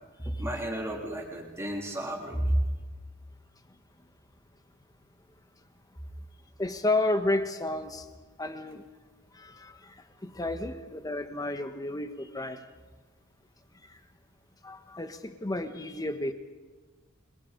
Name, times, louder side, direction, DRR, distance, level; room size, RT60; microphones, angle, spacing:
voice 1, 0.2-2.6, right 1 dB, 10° right, -1 dB, 3.4 m, -31 dB
voice 2, 6.6-8.0 8.4-8.8 9.3-9.9 10.2-12.6 14.6-16.3, left 2 dB, 15° left, 8 dB, 1.2 m, -31 dB
25.5 x 21.5 x 5.3 m, 1.3 s
head